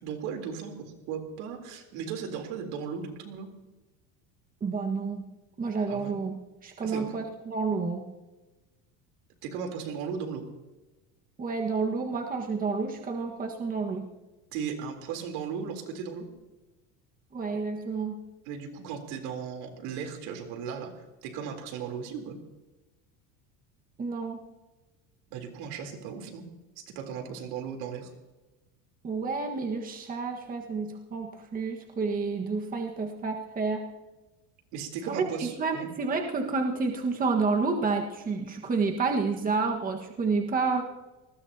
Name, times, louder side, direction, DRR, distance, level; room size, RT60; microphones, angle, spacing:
voice 1, 0.0-3.5 5.9-6.1 6.8-7.2 9.4-10.5 14.5-16.3 18.5-22.4 25.3-26.5 26.8-28.1 34.7-35.9, right 6 dB, 70° right, 4 dB, 3.7 m, -36 dB
voice 2, 4.6-5.2 5.6-6.3 6.6-8.0 11.4-14.1 17.3-18.2 24.0-24.4 29.0-33.8 35.1-40.8, right 4 dB, 20° right, 2 dB, 1.6 m, -29 dB
24.5 x 20.0 x 2.9 m, 1.1 s
cardioid pair, 140°, 37 cm